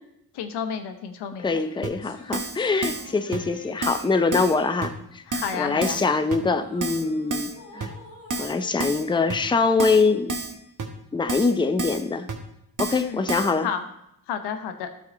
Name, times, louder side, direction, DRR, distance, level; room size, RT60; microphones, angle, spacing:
voice 1, 0.3-1.6 5.3-6.0 13.0-13.2 13.6-13.8 14.3-14.9, left 7 dB, 85° left, 7 dB, 0.9 m, -31 dB
sound 1, 1.4-10.0, left 3 dB, 60° left, 1.8 m, -48 dB
voice 2, 1.4-4.9 5.6-7.9 8.4-10.3 11.1-12.3 12.8-13.7, left 4 dB, 10° left, 9 dB, 0.6 m, -23 dB
Keyboard (musical), 1.8-1.9 2.3-2.6 2.8-3.1 3.3-3.4 3.8-4.0 4.3-4.5 4.8-4.9 5.3-5.5 5.8-6.0 6.3-6.4 6.8-7.0 7.3-7.5 7.8-7.9 8.3-8.5 8.8-9.0 9.3-9.4 9.8-10.0 10.3-10.5 10.8-10.9 11.3-11.5 11.8-12.0 12.3-12.4 12.8-13.0 13.3-13.5, right 3 dB, 50° right, 1.4 m, -29 dB
12.5 x 4.6 x 4.2 m, 0.81 s
cardioid pair, 70°, 39 cm